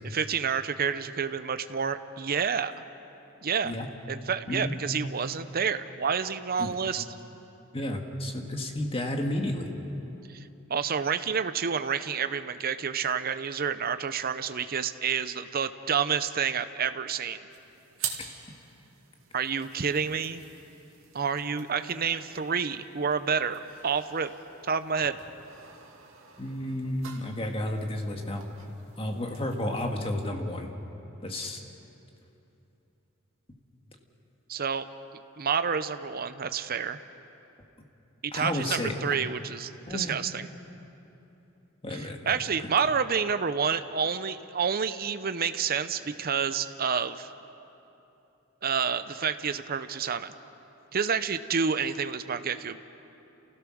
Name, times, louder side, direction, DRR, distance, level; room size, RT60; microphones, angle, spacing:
voice 1, 0.0-2.7 3.4-3.7 4.1-7.0 10.3-17.4 19.3-20.4 21.1-24.3 24.7-25.2 34.5-34.9 35.4-37.0 38.2-40.5 41.9-47.3 48.6-50.3 50.9-52.8, right 6 dB, 45° right, 11 dB, 0.7 m, -29 dB
voice 2, 7.7-9.7 26.4-28.4 29.0-30.7 31.2-31.6 38.3-38.9 39.9-40.2 41.8-42.4, left 1 dB, 30° left, 3 dB, 1.8 m, -32 dB
lights cigarette, 17.5-30.3, right 8 dB, 80° right, 2.4 m, -45 dB
29.5 x 16.0 x 6.3 m, 3.0 s
head